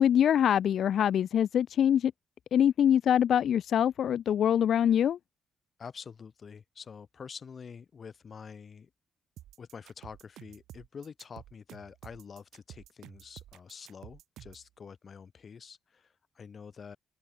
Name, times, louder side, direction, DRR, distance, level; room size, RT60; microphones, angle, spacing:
voice 1, 0.0-2.1 2.5-5.2, left 9 dB, 65° left, 0.5 m, -24 dB
voice 2, 5.8-8.9 9.6-17.0, left 6 dB, 45° left, 3.0 m, -47 dB
sound 1, 9.4-14.7, right 13 dB, 85° right, 6.1 m, -51 dB
open air
cardioid pair, 90°, 0 cm